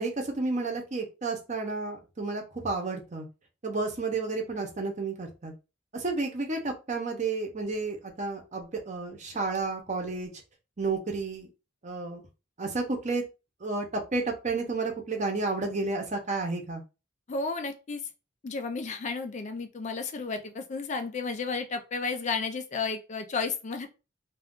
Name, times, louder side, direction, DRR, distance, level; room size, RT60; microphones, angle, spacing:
voice 1, 0.0-3.3 3.6-5.5 5.9-10.3 10.8-11.5 11.8-12.2 12.6-13.2 13.6-16.8, right 3 dB, 40° right, 3 dB, 0.7 m, -31 dB
voice 2, 17.3-18.0 18.4-23.9, left 4 dB, 40° left, 6 dB, 0.4 m, -32 dB
2.4 x 2.3 x 3.5 m, 0.29 s
head